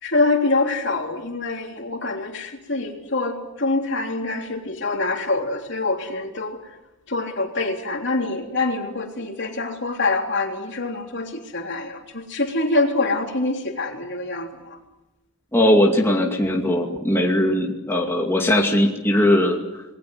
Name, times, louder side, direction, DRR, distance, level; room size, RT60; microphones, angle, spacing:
voice 1, 0.0-6.6 7.1-14.8, left 2 dB, 55° left, 2 dB, 3.4 m, -25 dB
voice 2, 15.5-19.8, left 1 dB, 10° left, 0 dB, 2.4 m, -19 dB
29.0 x 20.5 x 7.8 m, 0.98 s
head